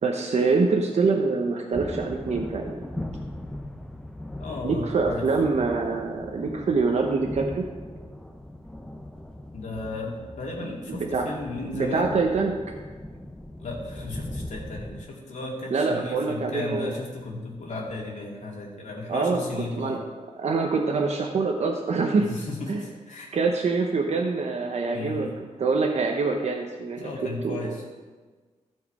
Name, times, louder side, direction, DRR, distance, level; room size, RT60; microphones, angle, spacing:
voice 1, 0.0-2.8 4.6-7.7 10.9-11.3 11.7-12.5 15.7-17.0 19.1-19.4 19.8-20.0 20.4-22.3 22.7-22.8 23.3-25.3 25.6-27.1 27.4-27.6, right 4 dB, 65° right, 1 dB, 1.0 m, -25 dB
sound 1, 1.7-15.0, left 1 dB, 5° left, 0.9 m, -39 dB
voice 2, 4.4-5.3 9.5-12.1 13.6-20.0 22.2-23.3 24.9-25.3 27.0-27.8, left 2 dB, 75° left, -3 dB, 2.4 m, -35 dB
14.0 x 4.8 x 4.8 m, 1.4 s
cardioid pair, 80°, 12 cm